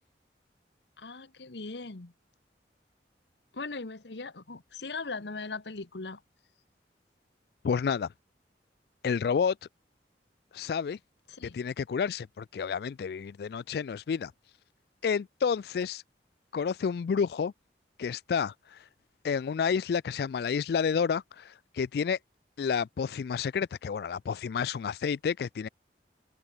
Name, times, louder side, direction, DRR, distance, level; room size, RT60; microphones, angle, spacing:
voice 1, 1.0-2.1 3.5-6.2 11.3-11.6, left 3 dB, 75° left, 1.3 m, -39 dB
voice 2, 7.6-8.1 9.0-9.6 10.5-11.0 11.5-14.3 15.0-16.0 16.5-17.5 18.0-18.8 19.2-22.2 22.6-25.7, left 6 dB, 60° left, 0.3 m, -30 dB
head